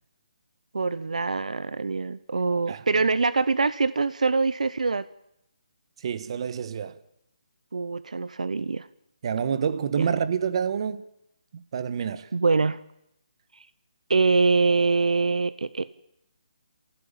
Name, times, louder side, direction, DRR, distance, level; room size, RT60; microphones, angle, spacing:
voice 1, 0.7-5.1 7.7-8.9 9.9-10.1 12.3-12.8 13.5-13.7 14.1-15.9, right 4 dB, 80° right, 0.8 m, -24 dB
voice 2, 6.0-7.0 9.2-11.0 11.5-12.3, right 7 dB, 45° right, 1.4 m, -28 dB
26.5 x 16.0 x 8.9 m
figure-of-eight pair, 155°, 4 cm